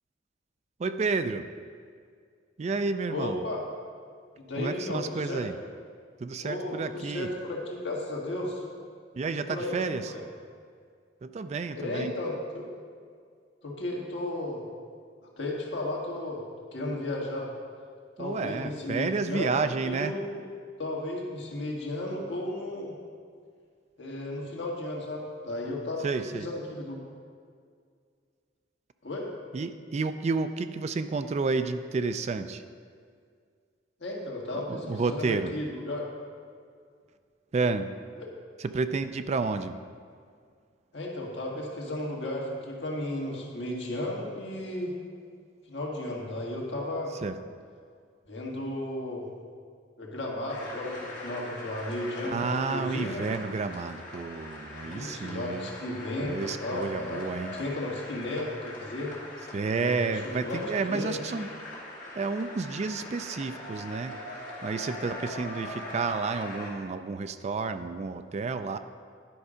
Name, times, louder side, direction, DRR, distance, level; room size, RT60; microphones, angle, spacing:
voice 1, 0.8-1.5 2.6-3.4 4.6-5.5 6.2-7.3 9.1-10.1 11.2-12.1 18.2-20.1 26.0-26.5 29.5-32.6 34.5-35.5 37.5-37.9 38.6-39.8 47.2-47.3 52.2-55.7 56.2-57.5 59.5-61.5 62.2-64.2 64.6-68.8, right 4 dB, 35° right, 10 dB, 0.3 m, -30 dB
voice 2, 3.1-3.6 4.4-5.5 6.4-8.6 9.5-10.2 11.8-12.7 13.6-14.6 15.4-16.4 16.7-17.5 18.2-20.5 20.8-22.9 24.0-27.0 29.0-29.3 34.0-36.1 38.2-38.3 40.9-45.0 45.7-47.1 48.3-49.3 50.0-53.2 54.8-57.3 57.5-59.1 59.7-60.1 60.4-60.6 60.9-61.2, left 1 dB, 75° left, -2 dB, 1.8 m, -34 dB
sound 1, 50.5-66.7, left 1 dB, 45° left, 2.5 m, -42 dB
10.5 x 5.4 x 5.0 m, 2.1 s
head